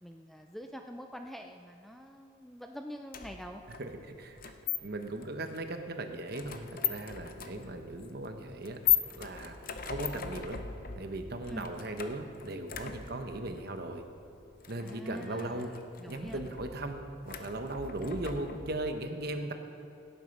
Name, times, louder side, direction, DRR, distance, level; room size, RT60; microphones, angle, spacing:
voice 1, 0.0-3.6 11.5-11.7 14.7-16.6, equal, ahead, 4 dB, 0.4 m, -45 dB
sound 1, 3.1-18.9, left 10 dB, 45° left, 0.7 m, -38 dB
voice 2, 3.8-4.4 4.8-9.6 9.9-10.6 11.0-14.0 14.7-15.7 16.1-19.5, right 2 dB, 50° right, 6 dB, 1.0 m, -38 dB
17.0 x 8.3 x 5.4 m, 2.7 s
head